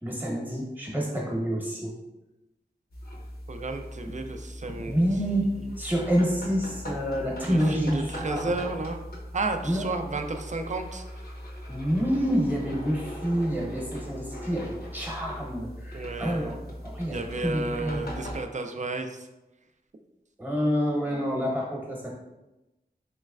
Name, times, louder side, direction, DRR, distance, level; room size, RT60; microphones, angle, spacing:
voice 1, 0.0-1.9 4.0-4.1 4.8-5.5 5.8-8.5 9.6-9.9 11.7-16.6 16.8-18.1 20.4-22.2, equal, 10° right, -3 dB, 0.9 m, -28 dB
sound 1, 2.9-18.5, equal, 65° left, 0.6 m, -40 dB
voice 2, 3.5-5.0 7.4-9.0 9.3-11.0 15.9-16.6 17.1-19.2, right 3 dB, 45° right, 6 dB, 0.4 m, -32 dB
3.1 x 3.1 x 2.3 m, 0.99 s
wide cardioid pair, 55°, 18 cm